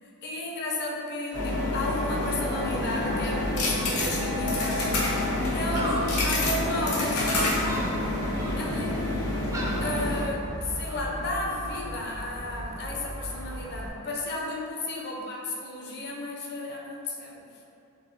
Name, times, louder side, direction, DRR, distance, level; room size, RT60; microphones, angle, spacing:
voice 1, 0.0-5.2 5.5-7.7 8.6-9.1 9.8-17.7, left 1 dB, 50° left, -2 dB, 0.5 m, -33 dB
sound 1, 1.3-10.2, left 2 dB, 85° left, 0.7 m, -28 dB
Gull seagull, 2.5-13.9, equal, 15° right, 0.3 m, -36 dB
3.8 x 3.3 x 2.7 m, 2.8 s
head